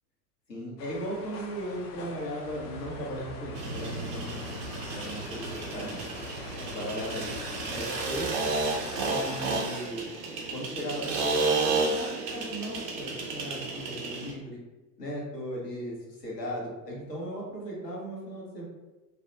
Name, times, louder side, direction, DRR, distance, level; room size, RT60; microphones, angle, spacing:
voice 1, 0.5-6.1 6.5-8.5 9.1-10.0 10.5-14.6 15.0-18.6, equal, 80° left, -4 dB, 1.2 m, -37 dB
sound 1, 0.8-9.5, left 3 dB, 40° left, 0.4 m, -45 dB
sound 2, 2.5-8.9, right 1 dB, 80° right, 0.6 m, -44 dB
sound 3, 3.5-14.3, right 3 dB, 30° right, 0.4 m, -32 dB
2.6 x 2.1 x 2.7 m, 1.1 s
figure-of-eight pair, 85°, 49 cm